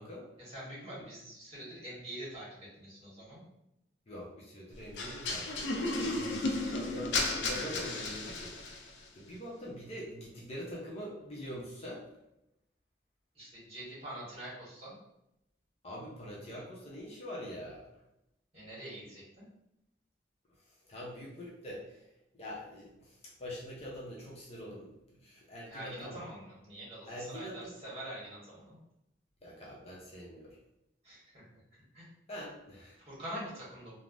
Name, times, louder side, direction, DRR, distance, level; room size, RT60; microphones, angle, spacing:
voice 1, 0.4-3.4 6.6-6.8 13.3-15.0 18.5-19.4 25.7-28.8 31.0-31.5 31.9-32.1 33.0-34.0, right 1 dB, 35° right, -8 dB, 1.4 m, -45 dB
voice 2, 4.1-8.9 9.1-12.0 15.8-17.9 20.9-22.1 22.3-26.2 27.1-27.7 29.4-30.6 32.3-33.0, equal, 35° left, -4 dB, 0.6 m, -44 dB
sound 1, 5.0-8.9, left 2 dB, 85° left, 0.4 m, -34 dB
3.3 x 2.1 x 2.5 m, 0.84 s
head